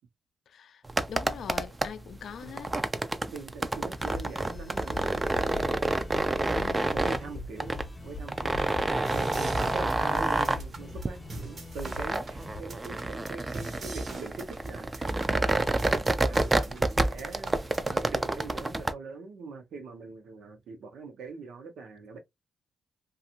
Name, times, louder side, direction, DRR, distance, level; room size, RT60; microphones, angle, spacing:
voice 1, 0.5-0.8 1.1-2.8 6.5-6.9, left 8 dB, 70° left, 0.3 m, -42 dB
sound 1, 0.8-18.9, right 2 dB, 20° right, 0.3 m, -29 dB
voice 2, 2.4-2.7 3.3-5.8 6.9-8.7 9.1-15.6 16.2-17.5 17.8-22.2, right 4 dB, 80° right, 0.8 m, -43 dB
sound 2, 4.0-12.6, left 3 dB, 40° left, 0.8 m, -43 dB
sound 3, 9.0-18.0, right 3 dB, 50° right, 0.8 m, -45 dB
2.5 x 2.3 x 2.8 m
cardioid pair, 110°, 0 cm